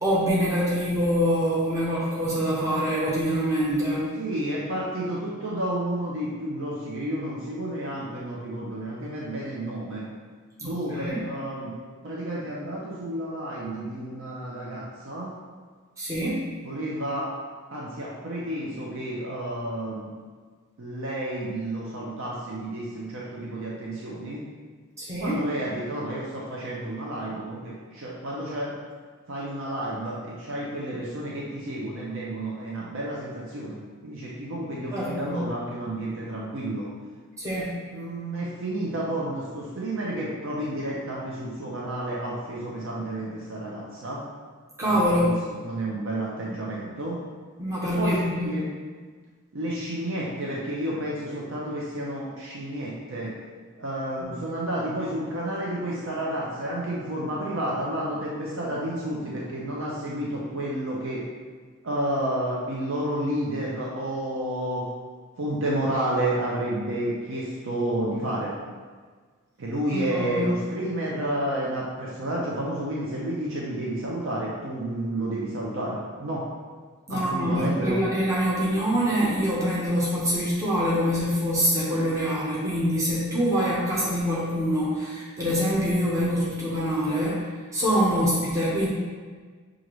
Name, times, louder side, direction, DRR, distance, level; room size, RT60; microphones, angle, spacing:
voice 1, 0.0-4.1 10.6-11.2 16.0-16.5 25.0-25.4 34.9-35.4 37.4-37.8 44.8-45.3 47.6-48.6 69.9-70.5 77.1-87.4 87.7-88.9, equal, 15° right, -8 dB, 0.8 m, -25 dB
voice 2, 4.2-10.1 10.6-11.7 12.0-15.3 16.6-17.3 17.7-20.1 20.8-24.4 25.2-28.7 29.3-36.9 37.9-44.2 44.9-45.4 45.6-47.2 47.8-48.7 49.5-53.3 53.8-61.3 61.8-64.9 65.4-68.5 69.6-76.4 77.1-78.0, right 1 dB, 60° right, -5 dB, 0.6 m, -31 dB
6.2 x 2.5 x 3.0 m, 1.5 s
head